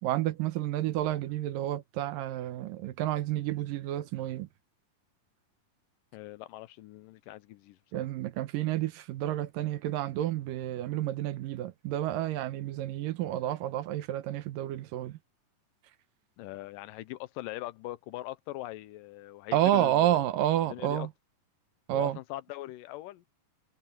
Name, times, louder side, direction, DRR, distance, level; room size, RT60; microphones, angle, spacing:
voice 1, 0.0-4.5 7.9-15.2 19.5-21.1 21.9-22.2, right 13 dB, 75° right, 2.6 m, -30 dB
voice 2, 6.1-7.8 16.4-20.2 20.7-21.1 21.9-23.3, left 16 dB, 80° left, 2.3 m, -41 dB
omnidirectional pair, 4.0 m